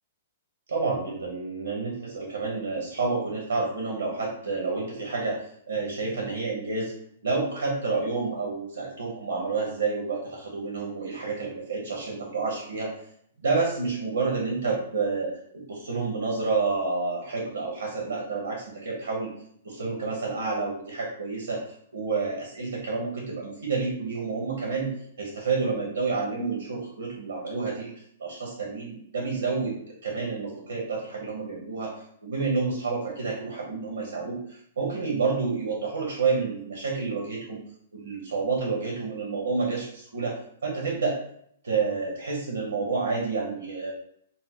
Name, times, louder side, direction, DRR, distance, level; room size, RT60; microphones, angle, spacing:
voice 1, 0.7-6.9 7.2-12.9 13.4-19.3 19.6-24.9 25.2-29.8 30.0-37.6 37.9-41.2 41.6-43.9, right 4 dB, 85° right, -2 dB, 0.7 m, -29 dB
2.4 x 2.1 x 3.5 m, 0.68 s
hypercardioid pair, 120°, 0 cm